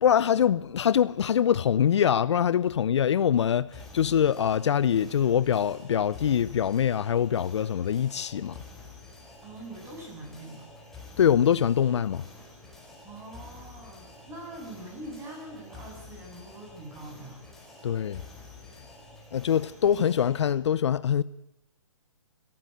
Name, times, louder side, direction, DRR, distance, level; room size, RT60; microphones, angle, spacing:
voice 1, 0.0-8.6 11.2-12.2 17.8-18.2 19.3-21.2, left 9 dB, 60° left, 0.7 m, -24 dB
sound 1, 3.7-20.5, left 3 dB, ahead, 4.7 m, -49 dB
voice 2, 9.4-10.7 13.0-17.4, right 1 dB, 15° right, 7.5 m, -43 dB
25.5 x 13.5 x 8.0 m
hypercardioid pair, 140°, 17 cm